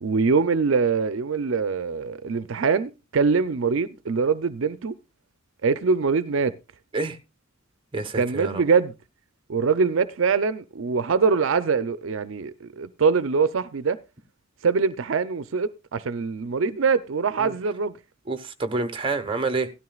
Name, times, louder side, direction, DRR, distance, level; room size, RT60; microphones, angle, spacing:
voice 1, 0.0-4.9 5.6-6.5 8.1-8.9 9.5-14.0 14.6-17.9, right 5 dB, 70° right, 0.5 m, -23 dB
voice 2, 7.9-8.6 17.4-17.5 18.3-19.7, right 3 dB, 25° right, 1.1 m, -28 dB
16.5 x 12.5 x 2.3 m
head